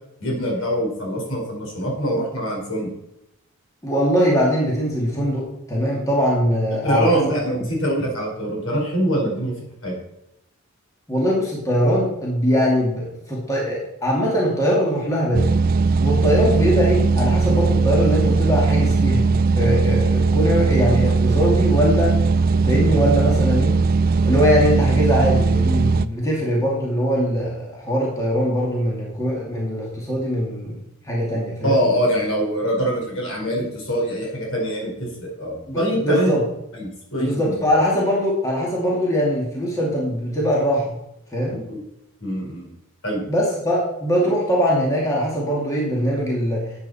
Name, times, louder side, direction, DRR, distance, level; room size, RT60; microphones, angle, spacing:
voice 1, 0.2-2.9 6.8-9.5 9.8-10.0 31.6-36.3 36.7-37.5 41.5-41.8 42.2-42.7 43.0-43.2, equal, 70° left, -1 dB, 4.6 m, -24 dB
voice 2, 3.8-7.2 11.1-15.6 16.0-19.2 19.5-22.2 22.6-23.8 24.2-30.8 31.0-31.8 35.7-36.4 37.2-40.9 41.3-41.5 43.3-46.6, equal, 15° left, -4 dB, 2.3 m, -21 dB
sound 1, 15.3-26.1, right 4 dB, 40° right, 0.3 m, -18 dB
13.0 x 8.4 x 4.2 m, 0.84 s
head